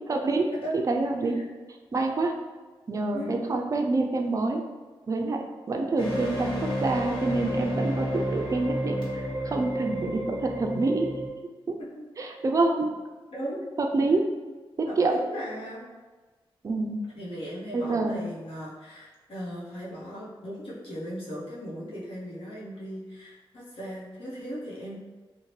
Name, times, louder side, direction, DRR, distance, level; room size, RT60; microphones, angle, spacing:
voice 1, 0.1-1.4 1.9-2.4 2.9-4.6 5.1-11.1 11.7-11.8 12.2-12.9 13.8-14.3 14.8-15.2 16.6-17.0 17.7-18.2, right 3 dB, 35° right, 3 dB, 0.3 m, -27 dB
sound 1, 6.0-11.3, equal, 50° left, 1.4 m, -31 dB
voice 2, 14.8-15.8 17.1-25.0, equal, 70° left, -8 dB, 0.9 m, -37 dB
2.7 x 2.1 x 3.0 m, 1.3 s
cardioid pair, 65°, 10 cm